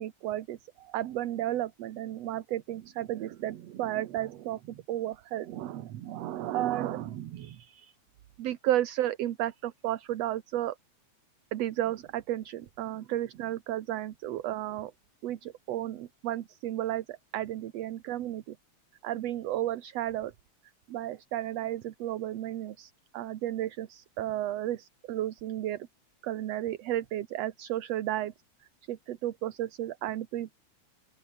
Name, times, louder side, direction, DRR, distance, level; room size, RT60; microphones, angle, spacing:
voice 1, 0.0-7.9 8.4-10.8 11.5-14.9 15.2-18.6 19.0-20.3 20.9-25.8 26.2-28.3 28.9-30.5, right 13 dB, 65° right, 2.1 m, -33 dB
open air
omnidirectional pair, 3.4 m